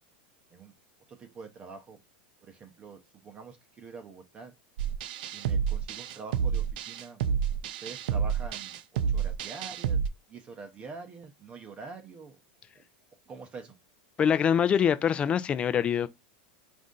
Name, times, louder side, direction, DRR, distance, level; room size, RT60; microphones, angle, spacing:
voice 1, 1.1-2.0 2.4-4.5 5.3-7.2 7.6-10.0 10.3-12.4 12.7-12.8 13.3-13.8, right 4 dB, 25° right, 0.7 m, -45 dB
sound 1, 4.8-10.1, right 7 dB, 70° right, 0.4 m, -29 dB
voice 2, 14.2-16.1, left 8 dB, 20° left, 0.4 m, -24 dB
4.1 x 2.6 x 3.7 m
supercardioid pair, 135°, 5 cm